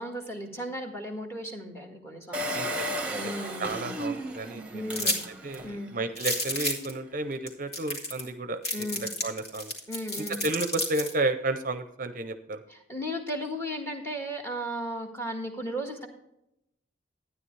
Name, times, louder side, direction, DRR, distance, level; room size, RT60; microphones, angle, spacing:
voice 1, 0.0-2.7 3.1-4.0 4.7-5.2 5.6-6.0 8.7-9.0 9.9-10.4 12.7-16.1, equal, 15° left, 3 dB, 1.6 m, -35 dB
Engine, 2.3-5.8 6.3-6.4 6.5-6.6, right 1 dB, 5° right, 1.3 m, -34 dB
voice 2, 2.5-5.1 5.4-8.6 8.9-9.7 10.3-12.6, right 2 dB, 45° right, 9 dB, 0.6 m, -32 dB
sound 1, 4.9-5.2 5.5-5.6 6.2-6.9 7.5-7.6 7.7-8.3 8.6-11.1, left 1 dB, 55° left, 2.6 m, -30 dB
12.5 x 9.8 x 3.2 m, 0.81 s
head